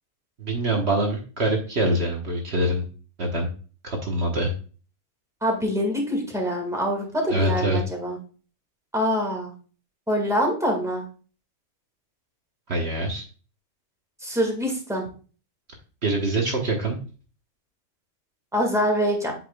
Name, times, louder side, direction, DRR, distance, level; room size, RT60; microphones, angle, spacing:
voice 1, 0.4-2.8 3.2-3.5 3.8-4.5 7.3-7.8 12.7-13.2 16.0-17.0, right 1 dB, 55° right, 1 dB, 1.4 m, -24 dB
voice 2, 5.4-8.2 8.9-9.5 10.1-11.0 14.2-15.1 18.5-19.3, equal, ahead, 1 dB, 1.7 m, -25 dB
7.9 x 5.9 x 2.3 m, 0.36 s
omnidirectional pair, 1.3 m